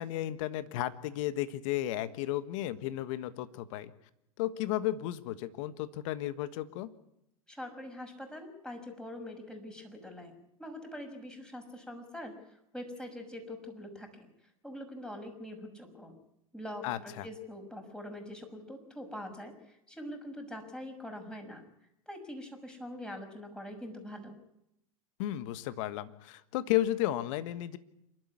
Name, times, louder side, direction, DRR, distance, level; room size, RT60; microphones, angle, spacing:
voice 1, 0.0-3.9 4.4-6.9 16.8-17.3 25.2-27.8, left 14 dB, 60° left, 12 dB, 1.4 m, -33 dB
voice 2, 7.5-10.3 10.6-12.3 12.7-14.3 14.6-16.1 16.5-21.6 22.1-24.3, left 1 dB, 5° left, 4 dB, 6.0 m, -44 dB
27.0 x 12.5 x 9.7 m, 0.81 s
hypercardioid pair, 95°, 19 cm